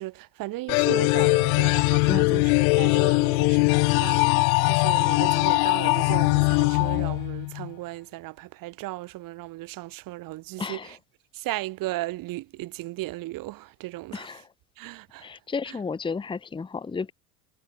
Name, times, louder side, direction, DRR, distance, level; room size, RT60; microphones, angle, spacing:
voice 1, 0.0-11.0 11.3-14.4 14.8-15.4 15.7-15.8, right 18 dB, 55° right, 1.4 m, -36 dB
sound 1, 0.7-7.7, left 34 dB, 90° left, 0.5 m, -21 dB
voice 2, 2.1-2.4 10.6-10.9 14.1-14.4 15.2-17.1, left 5 dB, 10° left, 1.0 m, -32 dB
cardioid pair, 135°, 41 cm